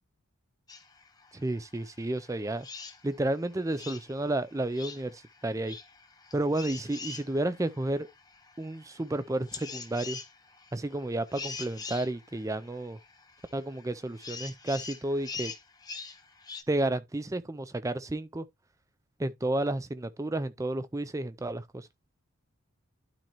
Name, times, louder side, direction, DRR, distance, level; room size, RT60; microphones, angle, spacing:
sound 1, 0.7-16.6, left 5 dB, 20° left, 0.7 m, -45 dB
voice 1, 1.3-2.7 3.0-5.1 5.4-5.8 6.3-8.1 8.6-10.2 10.7-13.0 13.5-15.5 16.7-18.5 19.2-21.9, right 1 dB, 15° right, 0.4 m, -31 dB
11.5 x 4.3 x 3.0 m
head